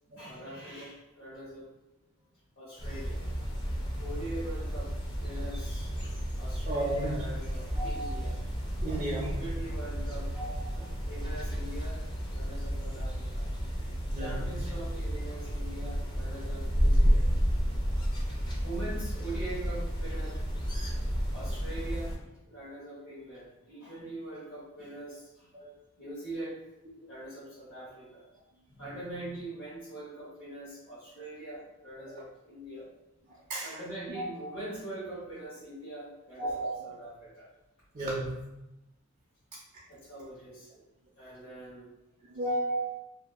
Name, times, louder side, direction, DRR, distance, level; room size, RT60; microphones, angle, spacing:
voice 1, 0.2-1.7 2.6-3.3 4.0-5.9 6.4-8.4 8.8-10.3 10.7-12.0 12.3-13.5 14.1-17.3 18.6-20.4 21.3-22.2 22.5-25.5 26.0-26.6 27.1-28.3 28.7-32.9 33.6-37.5 39.9-40.8 41.2-41.9, right 1 dB, 65° left, -11 dB, 1.1 m, -43 dB
sound 1, 2.8-22.2, equal, 20° left, 0.5 m, -31 dB
voice 2, 6.7-7.2 7.7-8.1 8.8-9.4 10.4-10.9 14.1-14.4 22.6-22.7 25.5-25.7 27.0-27.1 33.5-33.8 34.1-34.5 36.4-36.8 37.9-38.5 42.3-43.0, right 1 dB, 35° right, -4 dB, 0.4 m, -34 dB
2.6 x 2.3 x 2.4 m, 0.92 s
head